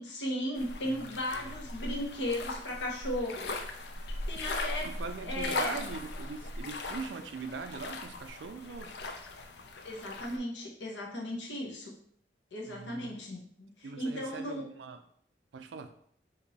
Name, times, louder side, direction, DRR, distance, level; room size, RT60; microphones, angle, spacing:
voice 1, 0.0-3.5 4.3-4.9 5.2-5.8 9.8-11.9 12.5-14.6, left 1 dB, 85° left, -1 dB, 0.9 m, -36 dB
sound 1, 0.6-10.4, left 2 dB, 65° left, 0.4 m, -39 dB
voice 2, 4.8-8.9 12.7-13.2 13.8-15.0 15.5-15.9, right 4 dB, 90° right, 8 dB, 0.4 m, -42 dB
2.9 x 2.6 x 4.0 m, 0.63 s
head